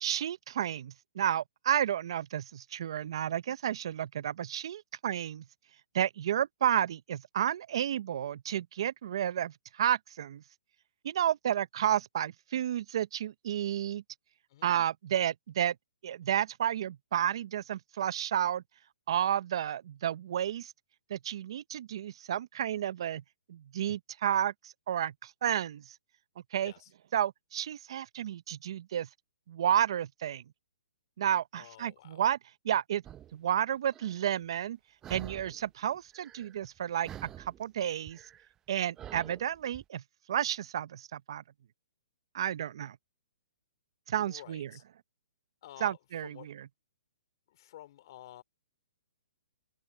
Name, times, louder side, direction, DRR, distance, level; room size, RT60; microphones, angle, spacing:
voice 1, 0.0-5.4 5.9-10.4 11.0-14.0 14.6-15.7 16.0-18.6 19.1-20.7 21.1-23.2 23.5-25.8 26.5-26.7 27.1-29.1 29.5-30.4 31.2-32.4 32.6-33.0 33.3-34.8 35.1-38.2 38.7-40.0 40.3-41.4 42.3-43.0 44.1-44.7 45.8-46.7, right 10 dB, 60° right, 0.7 m, -31 dB
voice 2, 31.5-32.2 44.2-44.8 45.6-46.5 47.5-48.4, left 13 dB, 50° left, 3.8 m, -51 dB
sound 1, 33.0-33.4 33.9-34.2 35.0-35.7 35.9-36.8 37.0-39.8, right 11 dB, 15° right, 0.7 m, -47 dB
hypercardioid pair, 145°, 3 cm